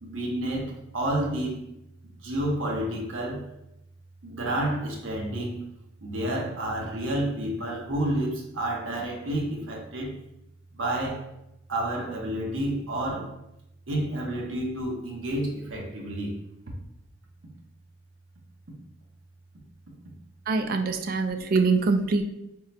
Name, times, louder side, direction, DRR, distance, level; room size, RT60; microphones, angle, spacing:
voice 1, 0.0-1.7 2.2-3.6 4.2-5.6 6.0-10.1 10.7-11.3 11.7-13.4 13.9-16.4 20.8-21.5, right 1 dB, 75° right, -1 dB, 0.8 m, -30 dB
voice 2, 20.5-22.2, right 4 dB, 50° right, 7 dB, 0.3 m, -24 dB
3.7 x 2.1 x 4.1 m, 0.84 s
head